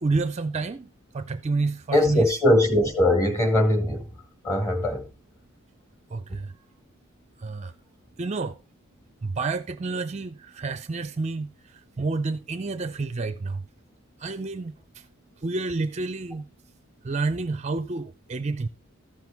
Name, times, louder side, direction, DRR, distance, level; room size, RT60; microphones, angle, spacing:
voice 1, 0.0-2.3 6.1-6.5 7.4-7.7 8.2-8.6 9.2-13.6 14.2-15.1 15.4-16.5 17.0-18.7, right 3 dB, 30° right, 0.5 m, -29 dB
voice 2, 1.9-4.1 4.4-5.0, left 1 dB, 15° left, 2.0 m, -21 dB
14.0 x 6.1 x 3.5 m
head